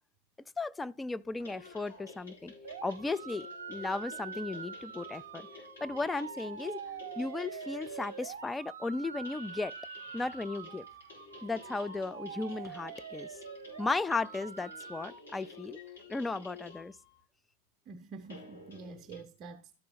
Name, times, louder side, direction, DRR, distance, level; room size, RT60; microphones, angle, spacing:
voice 1, 0.6-2.5 2.8-5.5 5.8-6.8 7.2-9.7 10.1-10.8 11.4-13.3 13.8-15.8 16.1-16.9, left 3 dB, 10° left, 0.4 m, -35 dB
sound 1, 1.3-8.5 9.1-17.2 18.2-19.2, left 4 dB, 75° left, 4.8 m, -51 dB
sound 2, 2.6-15.1, right 7 dB, 70° right, 0.5 m, -45 dB
voice 2, 17.9-19.8, right 4 dB, 35° right, 0.7 m, -47 dB
13.0 x 4.6 x 4.0 m
figure-of-eight pair, 90°, 0 cm